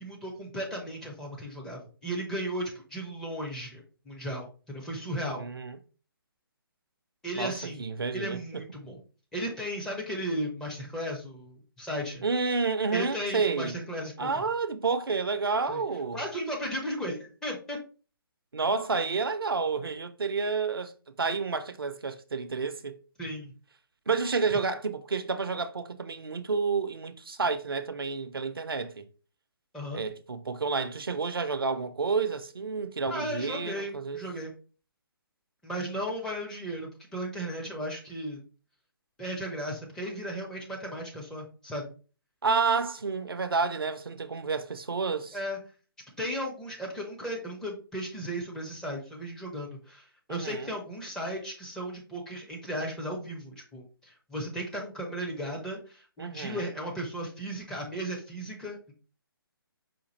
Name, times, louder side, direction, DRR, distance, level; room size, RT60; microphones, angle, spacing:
voice 1, 0.0-5.5 7.2-7.8 8.1-9.0 9.3-12.2 12.9-14.4 15.7-15.8 16.1-17.8 23.2-23.5 29.7-30.0 33.0-34.5 35.6-38.4 39.2-41.9 45.3-45.6 46.2-58.9, equal, 5° left, 0.5 m, -35 dB
voice 2, 5.4-5.8 7.3-8.4 12.2-13.8 14.2-16.2 18.5-20.9 21.2-23.0 24.1-29.0 29.9-34.2 42.4-45.4 50.3-50.7 56.2-56.7, right 4 dB, 70° right, 0.5 m, -30 dB
4.9 x 2.4 x 3.0 m
figure-of-eight pair, 140°, 13 cm